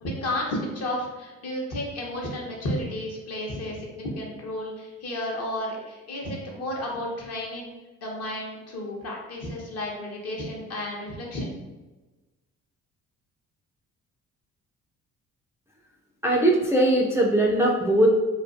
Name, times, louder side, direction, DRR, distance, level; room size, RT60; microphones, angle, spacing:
voice 1, 0.0-7.7 8.0-11.5, left 1 dB, 60° left, -2 dB, 0.8 m, -32 dB
voice 2, 16.2-18.1, right 1 dB, 10° right, -3 dB, 0.3 m, -20 dB
2.4 x 2.3 x 2.5 m, 1.2 s
supercardioid pair, 80°, 29 cm